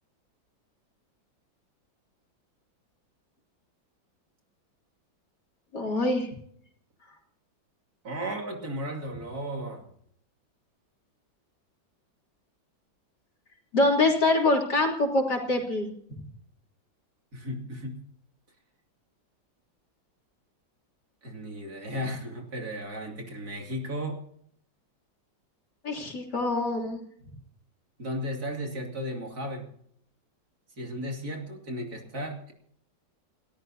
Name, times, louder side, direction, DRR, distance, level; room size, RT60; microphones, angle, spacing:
voice 1, 5.7-6.3 13.7-15.9 25.8-27.0, left 2 dB, 60° left, 0 dB, 3.9 m, -25 dB
voice 2, 8.0-9.9 17.3-18.0 21.2-24.2 28.0-29.7 30.8-32.5, equal, 50° right, 2 dB, 3.1 m, -35 dB
29.5 x 13.5 x 2.8 m, 0.66 s
omnidirectional pair, 2.1 m